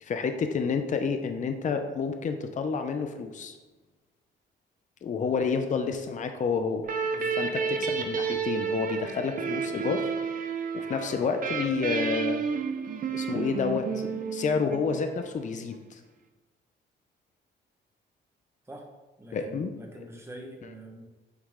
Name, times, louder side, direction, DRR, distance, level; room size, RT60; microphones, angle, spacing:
voice 1, 0.0-3.6 5.0-6.8 7.4-7.5 7.9-10.1 10.7-12.4 13.1-16.0 19.3-19.7, left 5 dB, 40° left, 7 dB, 0.6 m, -29 dB
sound 1, 6.8-15.3, right 5 dB, 45° right, 0.6 m, -31 dB
voice 2, 7.0-7.5 18.7-18.9 19.2-21.0, right 1 dB, 15° right, 1 dB, 1.2 m, -45 dB
8.1 x 3.1 x 3.6 m, 1.2 s
cardioid pair, 90°, 20 cm